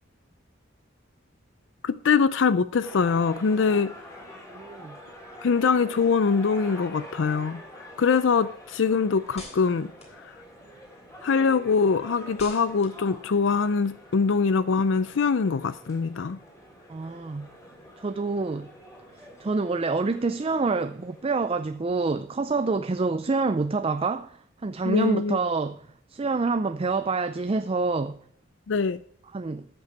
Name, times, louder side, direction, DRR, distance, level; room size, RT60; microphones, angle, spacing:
voice 1, 1.8-3.9 5.4-7.6 8.0-9.9 10.2-10.3 11.2-16.4 24.8-25.4 28.7-29.0, left 5 dB, 70° left, 0.5 m, -23 dB
sound 1, 2.8-21.3, equal, 15° left, 3.3 m, -46 dB
voice 2, 4.5-5.0 16.9-17.5 18.0-18.7 19.4-25.8 26.1-28.2 29.3-29.7, right 3 dB, 30° right, 0.4 m, -27 dB
sound 2, 8.8-11.0 11.4-14.9, left 3 dB, 35° left, 3.3 m, -51 dB
13.5 x 6.9 x 4.7 m
head